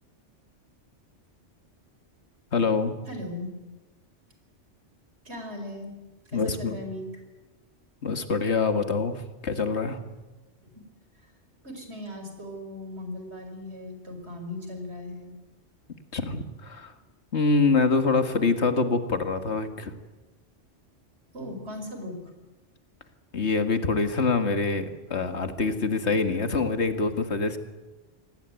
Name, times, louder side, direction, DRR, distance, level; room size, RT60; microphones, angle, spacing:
voice 1, 2.5-3.0 6.3-6.8 8.0-10.0 16.1-16.9 17.3-19.9 23.3-27.6, left 4 dB, 65° left, 9 dB, 2.0 m, -25 dB
voice 2, 3.1-3.5 5.3-5.9 6.3-7.2 10.6-10.8 11.2-11.3 11.6-15.3 21.3-22.3, left 1 dB, 60° right, 5 dB, 5.2 m, -38 dB
26.0 x 18.5 x 9.2 m, 1.2 s
omnidirectional pair, 1.2 m